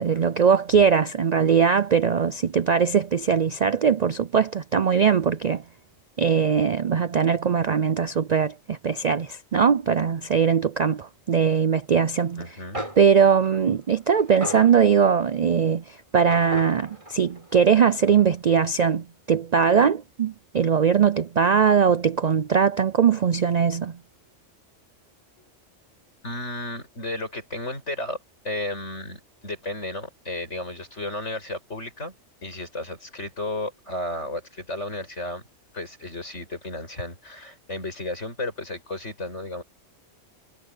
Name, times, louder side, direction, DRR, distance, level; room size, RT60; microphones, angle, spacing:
voice 1, 0.0-5.6 6.2-12.5 13.0-24.0, right 7 dB, 55° right, 0.4 m, -21 dB
voice 2, 12.4-12.9 26.2-28.2 28.4-32.1 32.4-35.4 35.7-39.6, left 2 dB, 70° left, 8.3 m, -33 dB
sound 1, 12.4-12.5 12.7-15.4 16.3-18.2, right 1 dB, 25° right, 6.5 m, -37 dB
omnidirectional pair, 1.3 m